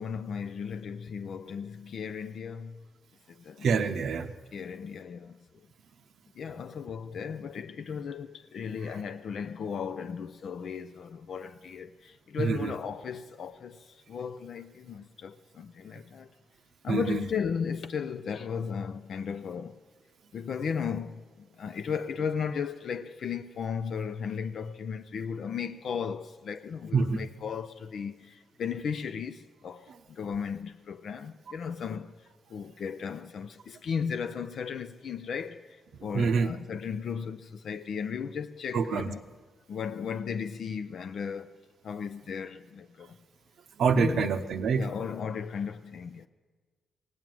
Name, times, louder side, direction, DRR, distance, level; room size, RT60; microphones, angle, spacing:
voice 1, 0.0-2.8 3.3-3.8 4.5-5.7 6.4-16.3 16.8-19.8 20.3-39.2 39.7-41.6 41.8-43.2 43.9-44.3 44.8-46.3, left 6 dB, 65° left, 0.5 m, -35 dB
voice 2, 3.6-4.3 8.9-9.0 12.4-12.7 16.9-17.3 26.9-27.2 36.1-36.5 38.7-39.1 43.8-44.9, right 5 dB, 75° right, 0.6 m, -26 dB
17.5 x 7.4 x 9.2 m
cardioid pair, 100°, 0 cm